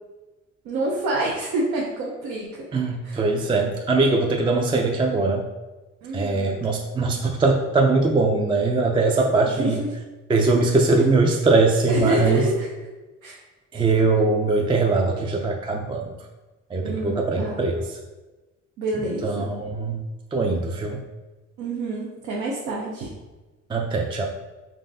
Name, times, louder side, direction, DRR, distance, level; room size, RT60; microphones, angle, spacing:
voice 1, 0.6-2.6 3.0-3.2 6.0-6.5 9.6-9.9 11.9-12.7 13.2-13.4 16.8-17.6 18.8-19.6 21.6-23.1, right 2 dB, 85° right, -4 dB, 0.7 m, -27 dB
voice 2, 2.7-5.5 6.1-9.8 10.3-12.4 13.7-16.1 16.7-18.0 19.2-20.0 20.3-21.0 23.7-24.3, right 3 dB, 15° right, 2 dB, 0.3 m, -21 dB
3.8 x 3.3 x 2.6 m, 1.2 s
cardioid pair, 90°, 30 cm